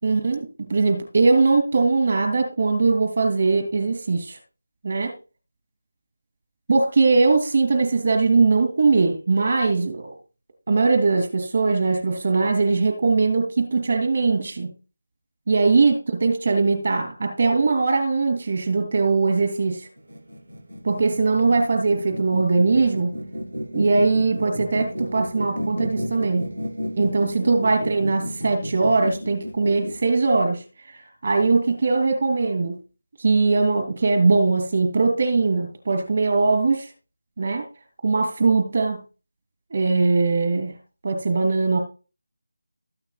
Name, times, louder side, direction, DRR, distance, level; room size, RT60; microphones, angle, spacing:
voice 1, 0.0-4.4 4.8-5.1 6.7-10.1 10.7-14.7 15.5-19.9 20.8-23.2 23.7-26.5 27.0-30.6 31.2-32.8 33.2-36.9 37.4-37.6 38.0-39.0 39.7-40.8 41.0-41.8, right 3 dB, 45° right, 6 dB, 2.7 m, -21 dB
sound 1, 20.0-30.1, equal, 85° right, 2.6 m, -32 dB
13.5 x 8.9 x 2.3 m, 0.32 s
figure-of-eight pair, 165°, 0 cm